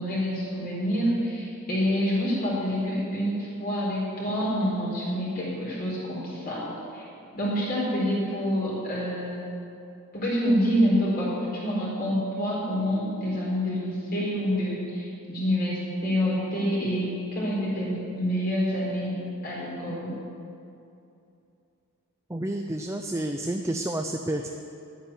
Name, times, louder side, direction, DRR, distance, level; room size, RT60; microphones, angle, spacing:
voice 1, 0.0-6.7 6.9-7.0 7.3-9.5 10.1-19.2 19.4-20.1, equal, 40° left, -6 dB, 4.3 m, -27 dB
voice 2, 22.3-24.5, right 1 dB, 10° right, 4 dB, 0.5 m, -30 dB
11.0 x 9.3 x 9.7 m, 2.7 s
head